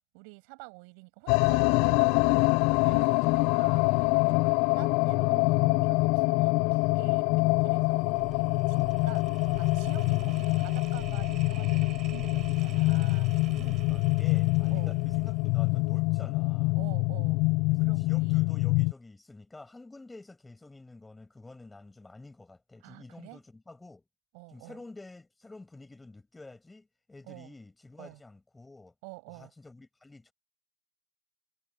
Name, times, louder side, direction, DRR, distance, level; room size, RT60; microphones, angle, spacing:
voice 1, 0.1-2.2 2.5-9.2 9.6-13.3 14.7-15.0 16.7-17.4 17.8-18.5 22.8-23.4 24.3-24.8 27.3-27.5 28.0-28.2 29.0-29.5, right 36 dB, 60° right, 7.1 m, -48 dB
sound 1, 1.3-18.9, left 26 dB, 55° left, 0.4 m, -25 dB
sound 2, 7.2-16.3, right 12 dB, 35° right, 7.9 m, -47 dB
voice 2, 13.5-16.7 17.8-24.0 24.5-28.9 29.3-30.3, left 2 dB, 10° left, 6.0 m, -49 dB
supercardioid pair, 130°, 0 cm